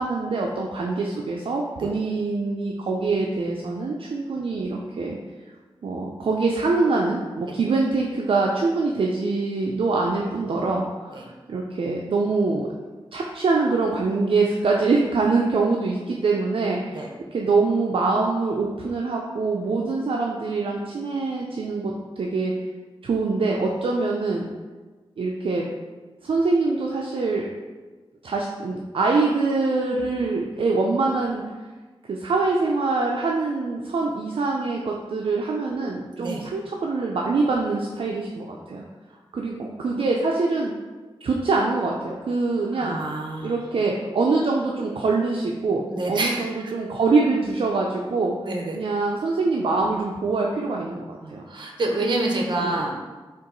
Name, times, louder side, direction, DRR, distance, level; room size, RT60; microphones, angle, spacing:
voice 1, 0.0-5.2 5.8-12.7 13.1-22.5 23.0-24.5 25.2-25.7 26.2-27.5 28.2-31.4 32.1-38.8 39.3-40.7 41.2-43.0 43.4-48.3 48.7-51.4 52.6-52.8, right 3 dB, 70° right, -1 dB, 0.4 m, -24 dB
voice 2, 36.2-36.5 42.7-43.5 45.9-46.7 48.4-48.8 51.2-52.9, right 2 dB, 50° right, 0 dB, 0.8 m, -28 dB
4.5 x 3.0 x 3.8 m, 1.3 s
wide cardioid pair, 110°, 10 cm